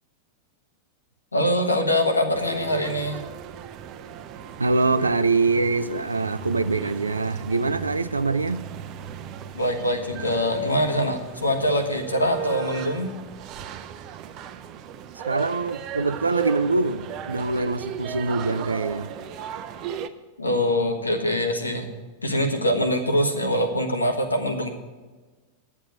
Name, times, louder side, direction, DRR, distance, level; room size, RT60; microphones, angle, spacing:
voice 1, 1.3-3.2 9.5-13.1 20.4-21.9 22.2-24.7, equal, 80° left, 1.2 m, -23 dB
sound 1, 2.3-20.1, right 9 dB, 40° right, 0.6 m, -37 dB
voice 2, 4.6-8.7 15.1-19.1, right 3 dB, 80° right, 0.4 m, -24 dB
sound 2, 6.3-13.1, right 5 dB, 60° right, 1.1 m, -43 dB
10.0 x 7.3 x 7.9 m
figure-of-eight pair, 90°, 0 cm